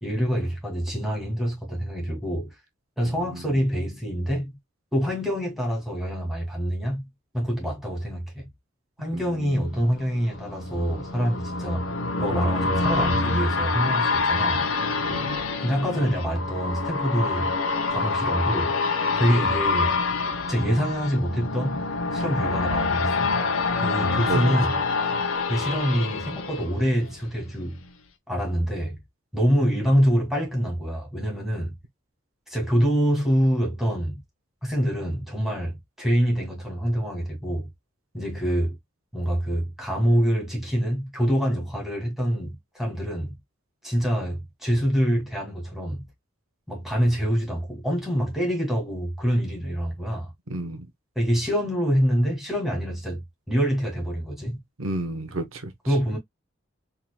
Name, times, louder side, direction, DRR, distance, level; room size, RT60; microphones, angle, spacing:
voice 1, 0.0-2.5 3.0-4.6 4.9-7.1 7.3-8.5 9.0-11.9 12.2-14.7 15.6-17.6 17.9-18.8 19.2-20.0 20.5-21.8 22.1-23.3 23.8-24.8 25.5-27.8 28.3-29.0 29.3-31.8 32.5-34.2 34.6-37.7 38.1-38.8 39.1-43.4 43.8-46.0 46.7-50.3 51.2-54.6 55.9-56.2, equal, ahead, 2.2 m, -25 dB
voice 2, 3.0-3.6 9.1-9.7 15.1-15.3 24.0-24.6 50.5-50.9 54.8-55.7, right 2 dB, 90° right, 0.9 m, -32 dB
sound 1, 9.6-27.4 27.8-27.9, left 3 dB, 85° left, 0.8 m, -26 dB
4.6 x 3.7 x 2.2 m
head